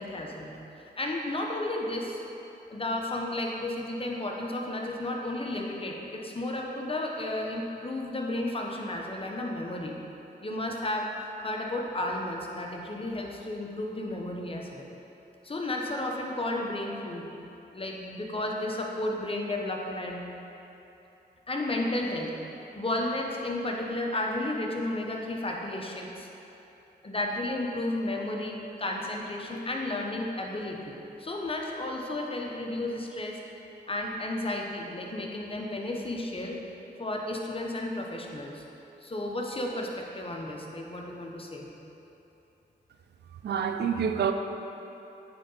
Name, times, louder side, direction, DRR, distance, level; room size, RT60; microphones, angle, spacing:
voice 1, 0.0-2.2 2.7-9.9 10.4-14.9 15.4-17.3 17.7-20.2 21.5-22.3 22.7-26.3 27.0-33.4 33.9-36.6 37.0-38.6 39.0-41.7, left 1 dB, 30° left, 0 dB, 1.0 m, -33 dB
voice 2, 43.4-44.3, right 7 dB, 70° right, 6 dB, 0.4 m, -27 dB
8.9 x 3.9 x 4.0 m, 2.9 s
cardioid pair, 50°, 18 cm